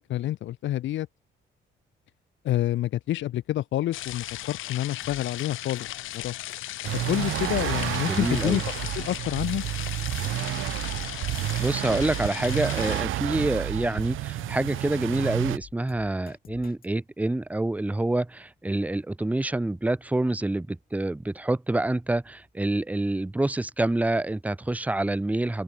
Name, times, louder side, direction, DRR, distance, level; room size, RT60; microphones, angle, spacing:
voice 1, 0.1-1.1 2.4-6.3 6.9-9.6, left 13 dB, 70° left, 0.7 m, -28 dB
sound 1, 3.9-13.0, left 15 dB, 85° left, 2.8 m, -37 dB
Drum kit, 5.0-5.4 5.8-5.9 6.1-6.2 6.5-6.6 6.9-7.4 7.6-7.7 8.0-8.1 8.4-8.9 9.1-9.2 9.5-10.4 10.6-11.9 12.1-12.2 12.5-12.6 12.9-13.4 13.6-14.9 15.1-16.9, left 7 dB, 50° left, 3.9 m, -48 dB
sound 2, 6.8-15.6, right 15 dB, 85° right, 1.2 m, -30 dB
voice 2, 8.1-8.6 11.6-25.6, right 2 dB, 5° right, 0.6 m, -27 dB
open air
cardioid pair, 90°, 20 cm